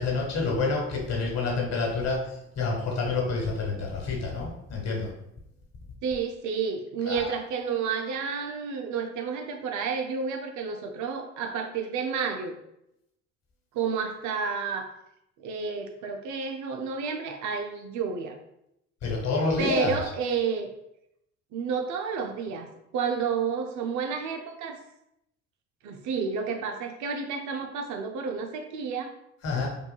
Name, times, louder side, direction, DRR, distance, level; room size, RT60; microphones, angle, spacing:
voice 1, 0.0-5.1 7.0-7.3 19.0-19.9 29.4-29.7, left 3 dB, 50° left, -1 dB, 1.2 m, -28 dB
voice 2, 6.0-12.6 13.7-14.9 15.4-18.4 19.6-20.7 21.5-24.8 25.8-29.1, right 5 dB, 55° right, 5 dB, 0.6 m, -30 dB
5.3 x 2.3 x 2.3 m, 0.81 s
hypercardioid pair, 60°, 35 cm